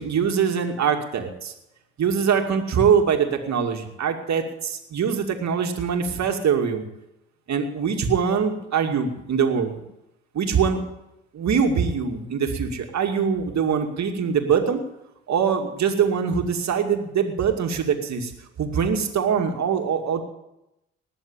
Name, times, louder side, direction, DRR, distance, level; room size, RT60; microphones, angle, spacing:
voice 1, 0.0-1.5 2.0-6.9 7.5-9.8 10.3-10.8 11.3-14.8 15.3-18.3 18.6-20.2, right 6 dB, 60° right, 4 dB, 2.4 m, -23 dB
19.5 x 7.2 x 8.8 m, 0.87 s
hypercardioid pair, 50°, 31 cm